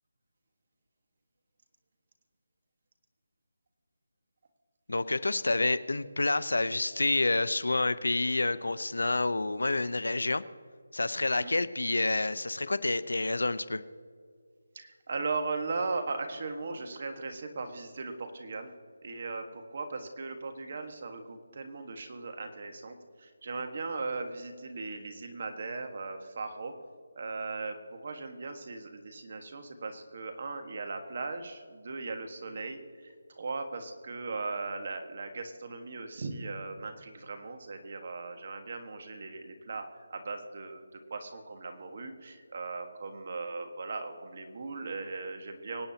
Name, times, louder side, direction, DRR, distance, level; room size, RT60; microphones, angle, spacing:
voice 1, 4.9-10.4 10.9-13.8, left 2 dB, 85° left, 15 dB, 0.7 m, -28 dB
voice 2, 14.7-18.8 19.0-26.7 27.1-45.9, right 3 dB, 45° right, 5 dB, 1.5 m, -38 dB
25.0 x 8.9 x 2.9 m, 2.1 s
figure-of-eight pair, 170°, 0 cm